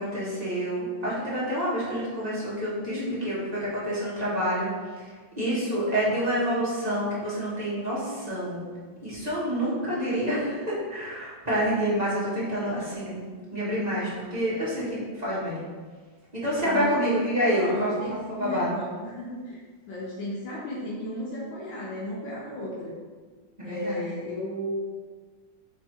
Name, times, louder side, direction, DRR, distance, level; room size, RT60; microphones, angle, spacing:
voice 1, 0.0-4.7 5.4-8.6 9.0-13.2 13.5-15.6 16.4-18.7 23.6-24.1, equal, 25° right, -8 dB, 0.9 m, -28 dB
voice 2, 2.8-3.4 5.4-5.7 16.6-17.0 17.5-19.6 19.9-23.0 23.6-24.7, left 1 dB, 75° left, -5 dB, 1.4 m, -34 dB
3.6 x 3.2 x 4.4 m, 1.5 s
omnidirectional pair, 2.2 m